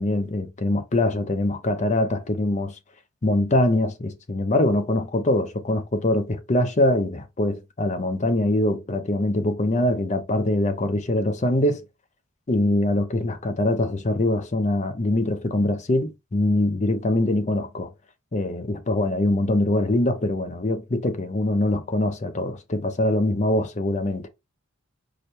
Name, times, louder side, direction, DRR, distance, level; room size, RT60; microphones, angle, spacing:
voice 1, 0.0-2.8 3.2-11.8 12.5-17.9 18.3-24.3, left 1 dB, 30° left, 0.6 m, -23 dB
4.9 x 2.1 x 4.2 m
head